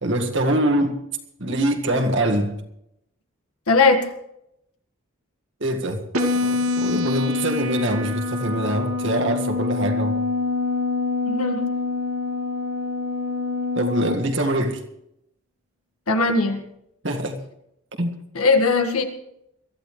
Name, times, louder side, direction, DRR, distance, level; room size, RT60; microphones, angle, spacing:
voice 1, 0.0-1.0 1.4-2.6 5.6-6.0 6.4-10.2 13.8-14.8 17.0-17.4 18.0-18.1, right 1 dB, 55° right, 4 dB, 1.9 m, -24 dB
voice 2, 3.7-4.1 11.3-11.6 16.1-16.6 18.4-19.0, left 3 dB, 85° left, 5 dB, 1.8 m, -19 dB
sound 1, 6.1-14.1, left 3 dB, 90° right, 2.3 m, -25 dB
22.5 x 14.5 x 3.3 m, 0.79 s
head